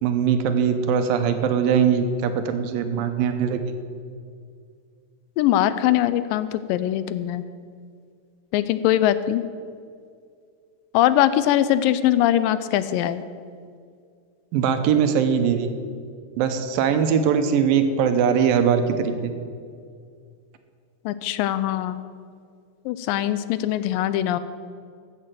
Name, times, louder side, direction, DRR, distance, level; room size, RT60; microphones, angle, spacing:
voice 1, 0.0-3.7 14.5-15.7 16.4-19.3, right 7 dB, 85° right, 8 dB, 2.6 m, -21 dB
voice 2, 5.4-7.4 8.5-9.4 10.9-13.2 21.1-22.0 22.9-24.4, left 12 dB, 85° left, 14 dB, 2.2 m, -21 dB
14.0 x 6.8 x 7.5 m, 2.2 s
omnidirectional pair, 4.0 m